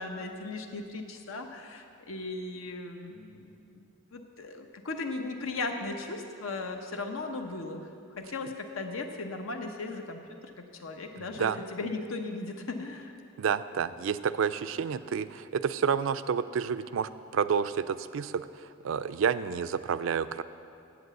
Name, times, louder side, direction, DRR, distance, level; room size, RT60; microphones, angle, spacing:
voice 1, 0.0-7.9 8.2-10.2 10.8-13.1, left 3 dB, 85° left, 4 dB, 0.8 m, -37 dB
voice 2, 11.2-11.6 13.4-20.4, right 6 dB, 70° right, 14 dB, 0.4 m, -30 dB
8.2 x 7.9 x 8.0 m, 2.6 s
head